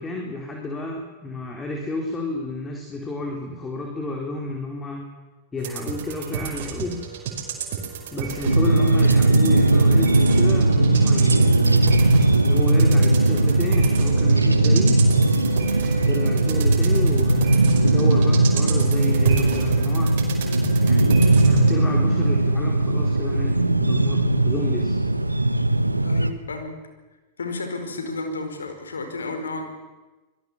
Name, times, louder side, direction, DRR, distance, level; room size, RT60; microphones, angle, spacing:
voice 1, 0.0-5.1 5.5-7.0 8.1-12.0 12.4-15.0 16.0-20.1 20.8-25.0, left 2 dB, 15° left, 1 dB, 4.1 m, -31 dB
sound 1, 5.6-21.8, right 7 dB, 50° right, 5.4 m, -31 dB
sound 2, 8.5-26.3, right 2 dB, 85° right, 1.3 m, -18 dB
voice 2, 26.0-26.7 27.4-29.7, left 3 dB, 70° left, 6 dB, 5.0 m, -32 dB
26.0 x 22.0 x 7.3 m, 1.2 s
figure-of-eight pair, 90°, 0 cm